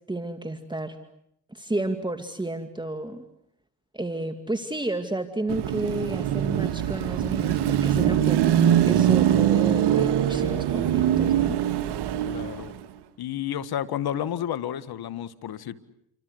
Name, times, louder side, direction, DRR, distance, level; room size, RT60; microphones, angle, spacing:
voice 1, 0.1-1.0 1.5-3.2 3.9-11.6, right 2 dB, 10° right, 8 dB, 2.3 m, -32 dB
Car passing by / Traffic noise roadway noise / Engine, 5.5-12.8, right 10 dB, 75° right, 1.9 m, -22 dB
voice 2, 12.2-12.8 13.2-15.7, left 10 dB, 65° left, 14 dB, 1.8 m, -31 dB
29.0 x 25.0 x 8.1 m, 0.75 s
supercardioid pair, 70°, 40 cm